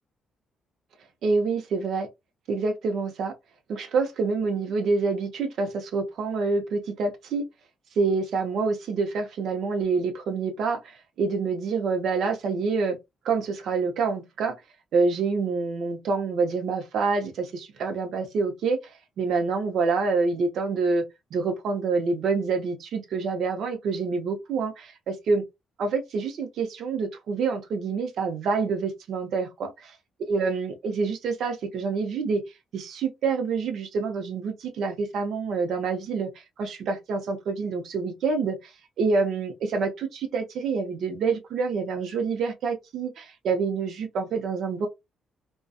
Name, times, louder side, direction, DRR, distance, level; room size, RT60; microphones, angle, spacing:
voice 1, 1.2-2.1 2.5-3.3 3.7-7.4 8.0-13.0 13.2-14.5 14.9-18.8 19.2-21.0 21.3-25.4 25.8-29.7 30.3-32.4 32.7-36.3 36.6-38.7 39.0-44.9, right 4 dB, 70° right, 0.7 m, -27 dB
2.6 x 2.2 x 2.3 m
cardioid pair, 90°, 0 cm